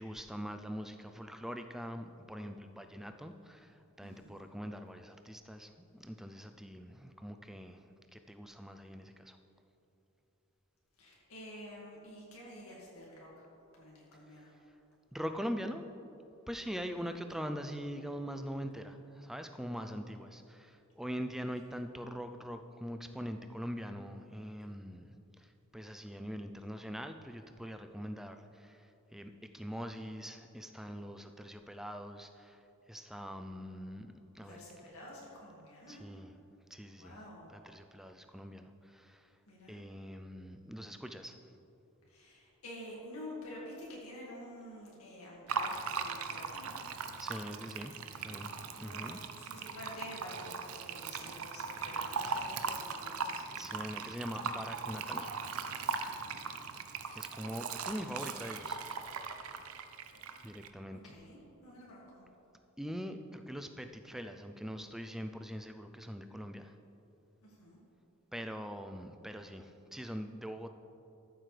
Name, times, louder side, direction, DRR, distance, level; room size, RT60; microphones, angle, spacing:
voice 1, 0.0-9.4 15.1-15.9 16.5-34.1 34.3-34.6 35.9-36.3 36.7-37.2 37.5-39.3 39.7-41.4 47.2-48.5 48.8-49.2 53.6-55.4 56.8-56.9 57.1-58.8 60.4-61.0 62.8-66.8 68.3-70.7, equal, ahead, 7 dB, 0.3 m, -43 dB
voice 2, 4.0-4.4 11.0-13.4 13.7-14.6 17.0-17.1 34.4-36.0 37.0-37.5 39.5-39.8 42.1-46.7 48.7-53.5 56.0-56.5 60.9-62.2 67.4-67.8, left 1 dB, 80° left, -5 dB, 2.0 m, -49 dB
Fill (with liquid), 45.5-60.7, right 5 dB, 75° right, 0.6 m, -39 dB
13.5 x 7.6 x 3.3 m, 3.0 s
head